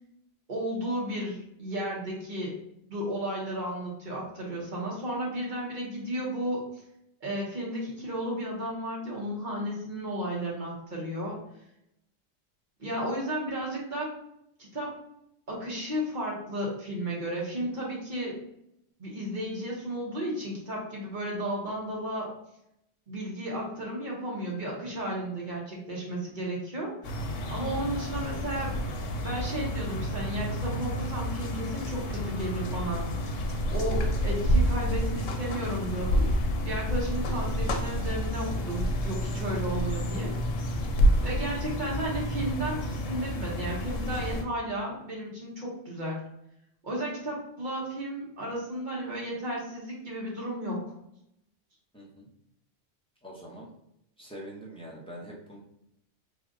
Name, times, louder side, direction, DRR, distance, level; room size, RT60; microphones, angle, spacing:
voice 1, 0.5-2.5 2.9-6.6 7.2-11.4 12.8-14.1 14.7-14.9 15.5-18.3 19.0-22.3 23.1-27.2 27.5-28.7 29.2-33.1 33.7-36.3 36.6-40.3 41.2-46.2 46.8-50.8, right 1 dB, 40° right, -4 dB, 1.3 m, -33 dB
sound 1, 27.0-44.4, equal, 85° left, 1.0 m, -29 dB
voice 2, 51.9-52.3 53.2-53.7 54.2-55.6, equal, 5° left, -4 dB, 0.7 m, -44 dB
3.3 x 2.4 x 3.7 m, 0.79 s
omnidirectional pair, 1.3 m